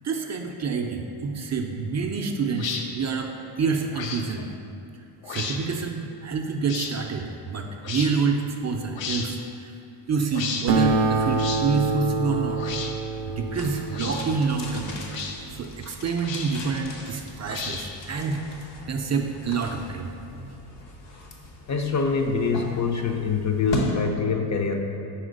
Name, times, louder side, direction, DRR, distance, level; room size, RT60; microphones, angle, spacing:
voice 1, 0.0-3.3 3.6-4.5 5.3-9.7 10.1-12.6 13.3-15.0 15.5-18.4 18.9-20.1, right 5 dB, 40° right, 3 dB, 0.4 m, -27 dB
sound 1, 2.6-2.8 3.9-4.2 5.2-5.6 6.7-6.9 7.8-8.1 9.0-9.3 10.3-10.7 11.4-11.6 12.6-12.9 13.9-14.2 15.1-15.4 16.2-16.7 17.5-18.0, left 6 dB, 90° left, 0.7 m, -33 dB
Acoustic guitar, 10.7-15.5, right 3 dB, 90° right, 0.5 m, -27 dB
sound 2, 13.5-23.9, left 1 dB, 70° left, 1.0 m, -38 dB
voice 2, 21.7-24.8, left 5 dB, 40° left, 3 dB, 0.5 m, -25 dB
4.6 x 4.3 x 5.1 m, 2.6 s
cardioid pair, 120°, 44 cm